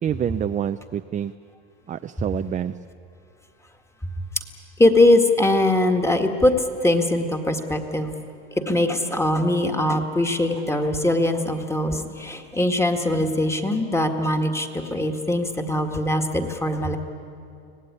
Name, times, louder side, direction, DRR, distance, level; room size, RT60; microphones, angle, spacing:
voice 1, 0.0-1.3 1.9-2.8, right 9 dB, 20° right, 9 dB, 0.5 m, -27 dB
voice 2, 4.8-6.5 6.8-8.2 8.7-17.0, left 1 dB, 10° left, 4 dB, 1.9 m, -21 dB
24.5 x 18.0 x 9.8 m, 2.5 s
supercardioid pair, 115°, 34 cm